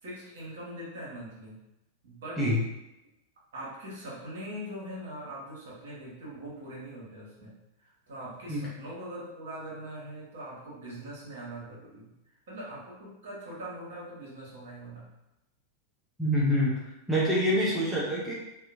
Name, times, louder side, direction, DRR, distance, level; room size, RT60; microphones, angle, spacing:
voice 1, 0.0-1.6 2.0-2.5 3.5-7.6 7.8-12.1 12.5-15.1, right 1 dB, 55° right, -6 dB, 1.1 m, -42 dB
voice 2, 16.2-16.7 17.1-18.3, equal, 5° right, -7 dB, 0.6 m, -26 dB
2.8 x 2.2 x 2.6 m, 0.91 s
figure-of-eight pair, 90°, 0 cm